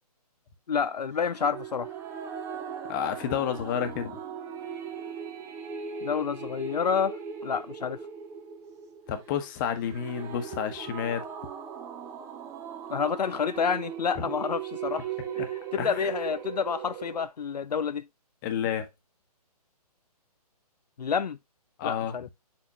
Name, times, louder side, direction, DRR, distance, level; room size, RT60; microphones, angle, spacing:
voice 1, 0.7-1.9 6.0-8.0 12.9-15.1 15.4-15.5 15.8-18.0 21.0-21.4 21.8-22.3, left 6 dB, 85° left, 0.5 m, -29 dB
sound 1, 1.2-17.2, right 7 dB, 15° right, 0.8 m, -39 dB
voice 2, 2.9-4.2 9.1-11.2 14.2-14.3 15.8-16.1 18.4-18.9 21.8-22.2, left 8 dB, 30° left, 1.2 m, -30 dB
7.4 x 4.3 x 3.0 m
hypercardioid pair, 140°, 20 cm